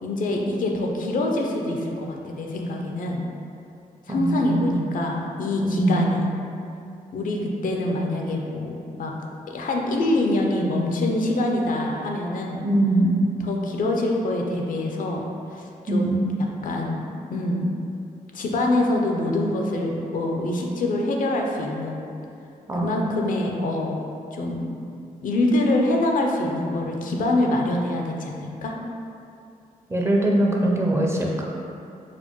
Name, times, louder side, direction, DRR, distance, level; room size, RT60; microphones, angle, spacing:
voice 1, 0.0-3.2 4.1-6.3 7.1-9.1 9.5-12.6 13.4-16.2 16.6-17.7 18.3-22.0 22.8-24.0 24.3-24.7 25.2-28.7, left 1 dB, 65° left, 0 dB, 0.5 m, -25 dB
voice 2, 4.1-4.8 5.6-6.1 12.6-13.2 15.9-16.2 22.7-23.0 29.9-31.4, right 1 dB, 15° right, -2 dB, 0.5 m, -22 dB
4.2 x 2.2 x 3.0 m, 2.5 s
cardioid pair, 80°, 15 cm